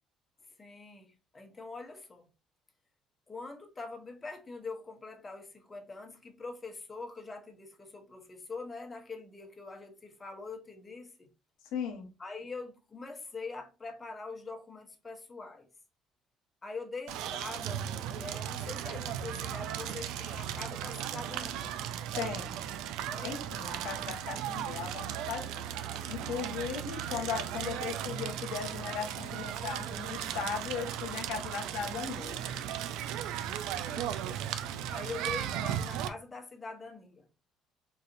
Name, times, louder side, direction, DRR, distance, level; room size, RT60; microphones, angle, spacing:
voice 1, 0.6-2.3 3.3-11.3 12.2-15.7 16.6-21.7 23.1-23.4 33.9-34.4 34.9-37.3, left 3 dB, 25° left, 0.8 m, -44 dB
voice 2, 11.7-12.1 22.2-22.6 23.2-25.5 26.1-32.4, left 6 dB, 85° left, 1.0 m, -37 dB
Crackle, 17.1-36.1, right 10 dB, 80° right, 0.3 m, -36 dB
4.1 x 2.5 x 2.5 m
cardioid pair, 90°, 0 cm